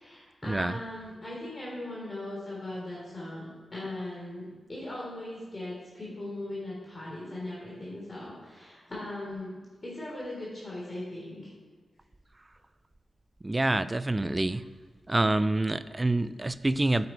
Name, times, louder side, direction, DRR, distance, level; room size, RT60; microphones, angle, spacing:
voice 1, 0.0-11.5 14.5-14.6, left 1 dB, 35° left, -5 dB, 3.4 m, -39 dB
voice 2, 13.4-14.6 15.1-17.1, right 2 dB, 25° right, 15 dB, 0.4 m, -26 dB
9.3 x 7.7 x 4.6 m, 1.4 s
cardioid pair, 60°, 0 cm